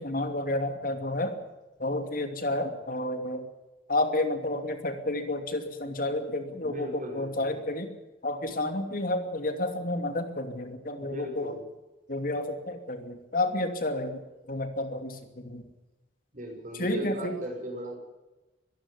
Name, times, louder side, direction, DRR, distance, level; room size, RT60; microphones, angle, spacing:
voice 1, 0.0-1.3 1.8-3.5 3.9-7.9 8.2-11.6 12.1-14.2 14.5-15.6 16.8-17.4, left 1 dB, 50° left, 7 dB, 2.8 m, -30 dB
voice 2, 6.6-7.6 11.0-11.6 16.3-18.0, equal, 45° right, 2 dB, 6.3 m, -38 dB
24.0 x 11.5 x 9.8 m, 1.1 s
head